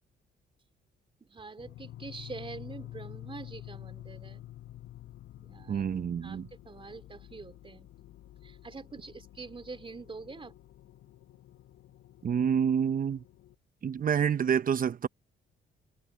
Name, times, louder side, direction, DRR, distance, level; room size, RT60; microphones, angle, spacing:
voice 1, 1.3-4.4 5.4-5.8 6.2-6.4 6.6-7.9 8.4-10.5, right 4 dB, 25° right, 3.0 m, -45 dB
sound 1, 1.6-13.6, left 13 dB, 85° left, 7.3 m, -49 dB
voice 2, 5.7-6.5 12.2-13.2 13.8-15.1, right 7 dB, 45° right, 0.8 m, -28 dB
cardioid pair, 90°, 20 cm